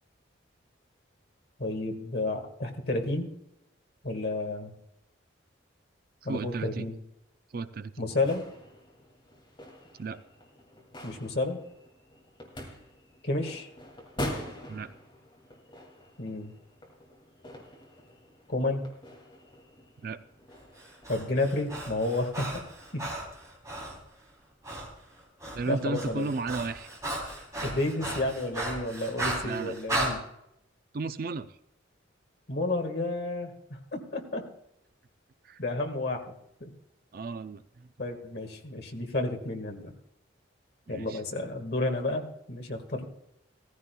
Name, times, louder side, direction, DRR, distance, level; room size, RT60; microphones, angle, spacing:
voice 1, 1.6-3.3 4.0-4.7 6.2-7.0 8.0-8.5 11.0-11.6 13.2-13.7 16.2-16.5 18.5-18.8 21.1-22.6 22.9-23.1 25.7-26.3 27.6-30.2 32.5-34.5 35.6-36.7 38.0-39.9 40.9-43.0, left 2 dB, 55° left, 4 dB, 1.7 m, -31 dB
voice 2, 6.3-6.9 7.5-8.1 10.0-10.2 14.7-14.9 20.0-20.2 25.5-26.9 27.2-27.3 29.4-29.7 30.9-31.6 35.4-35.6 37.1-37.9 40.9-41.2, right 3 dB, 45° right, 11 dB, 0.4 m, -34 dB
sound 1, 8.1-21.5, left 1 dB, 25° left, 2.3 m, -44 dB
Breathing, 20.8-24.0 24.6-24.9 25.2-30.1, right 1 dB, 15° right, 3.2 m, -35 dB
16.5 x 15.0 x 2.3 m, 0.81 s
head